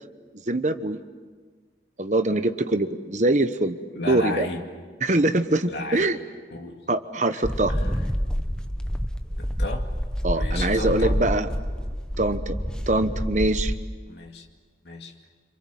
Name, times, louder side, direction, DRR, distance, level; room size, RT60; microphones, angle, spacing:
voice 1, 0.5-1.0 2.0-3.8 4.1-4.5 5.0-6.2 6.9-7.7 10.2-11.5 12.2-12.5 12.9-13.7, right 2 dB, 40° right, 9 dB, 1.1 m, -23 dB
voice 2, 3.9-4.6 5.1-5.2 5.7-6.1 6.5-6.9 7.3-7.4 7.7-7.9 9.4-9.9 10.3-11.2 14.1-14.5 14.8-15.1, left 2 dB, 75° left, 2 dB, 2.3 m, -34 dB
sound 1, 7.4-13.9, equal, 5° left, 1.0 m, -28 dB
27.5 x 26.0 x 7.7 m, 1.5 s
head